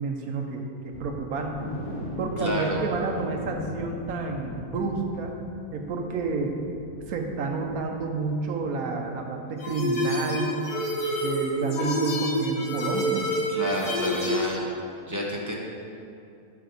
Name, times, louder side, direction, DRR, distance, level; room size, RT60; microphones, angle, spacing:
voice 1, 0.0-1.7 2.2-5.3 5.7-6.6 7.1-10.6 11.2-13.3, right 4 dB, 75° right, 3 dB, 1.3 m, -30 dB
sound 1, 0.9-8.7 8.9-9.1 9.5-9.6, left 1 dB, 55° left, 1.5 m, -40 dB
voice 2, 2.4-2.8 13.5-14.6 15.1-15.6, equal, 15° right, -3 dB, 0.7 m, -29 dB
sound 2, 9.6-14.5, equal, 85° left, 1.7 m, -27 dB
9.3 x 5.7 x 4.0 m, 2.5 s
omnidirectional pair, 1.6 m